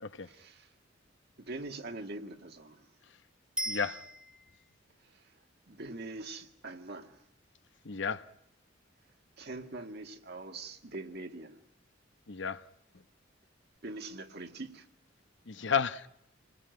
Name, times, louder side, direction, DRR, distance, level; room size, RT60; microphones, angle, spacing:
voice 1, 0.2-0.7 1.4-2.9 5.0-5.2 5.7-7.2 9.4-11.6 13.8-14.9, right 2 dB, 55° right, 2.0 m, -43 dB
Bicycle bell, 3.6-4.7 13.8-13.9, right 1 dB, 5° right, 2.0 m, -38 dB
voice 2, 3.7-4.0 7.8-8.2 12.3-12.6 15.5-16.1, left 6 dB, 65° left, 0.9 m, -32 dB
28.0 x 20.0 x 9.4 m
head